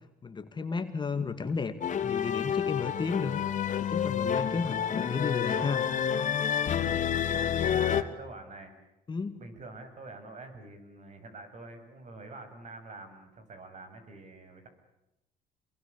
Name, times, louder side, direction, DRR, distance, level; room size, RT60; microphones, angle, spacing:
voice 1, 0.2-1.7 2.0-3.4 3.8-5.8 9.1-9.4, left 5 dB, 25° left, 9 dB, 2.0 m, -33 dB
sound 1, 1.8-8.0, left 8 dB, 45° left, 2.0 m, -29 dB
voice 2, 6.6-7.0 7.6-8.8 9.4-14.7, right 2 dB, 45° right, 8 dB, 7.3 m, -46 dB
28.0 x 22.5 x 8.4 m, 0.90 s
cardioid pair, 110°, 17 cm